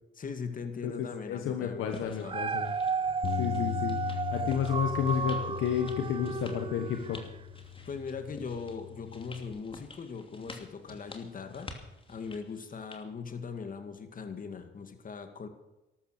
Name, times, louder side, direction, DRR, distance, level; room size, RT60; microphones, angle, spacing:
voice 1, 0.2-2.4 7.9-11.7 12.1-15.5, left 5 dB, 45° left, 7 dB, 2.3 m, -40 dB
voice 2, 0.8-2.7 3.3-7.2, left 8 dB, 85° left, 5 dB, 1.4 m, -31 dB
sound 1, 1.9-13.0, left 3 dB, 25° left, 2.7 m, -50 dB
Dog, 2.1-7.4 7.9-8.0, right 5 dB, 25° right, 0.5 m, -33 dB
Bass guitar, 3.2-9.5, left 17 dB, 60° left, 1.5 m, -39 dB
13.5 x 12.5 x 6.7 m, 1.0 s
cardioid pair, 90°, 20 cm